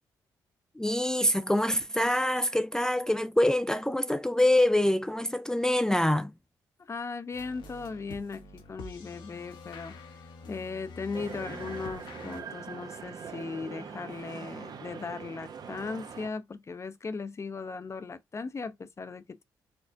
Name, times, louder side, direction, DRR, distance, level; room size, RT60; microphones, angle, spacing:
voice 1, 0.8-6.3, left 1 dB, 5° left, 0.3 m, -25 dB
voice 2, 6.8-19.4, left 4 dB, 35° left, 0.7 m, -38 dB
sound 1, 7.3-12.4, left 3 dB, 75° left, 1.0 m, -46 dB
sound 2, 11.1-16.3, right 6 dB, 55° right, 0.8 m, -42 dB
4.4 x 2.4 x 2.6 m
supercardioid pair, 65°, 8 cm